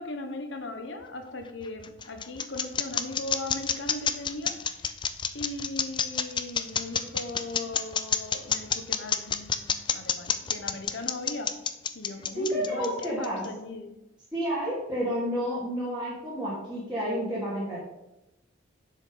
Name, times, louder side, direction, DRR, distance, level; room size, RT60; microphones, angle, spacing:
voice 1, 0.0-5.0 5.3-11.5 11.9-13.9, left 2 dB, 60° left, 6 dB, 1.1 m, -38 dB
sound 1, 1.4-13.5, left 7 dB, 25° left, 0.4 m, -28 dB
voice 2, 12.1-13.4 14.3-17.8, equal, 5° right, -10 dB, 2.7 m, -30 dB
7.4 x 7.1 x 5.5 m, 0.94 s
head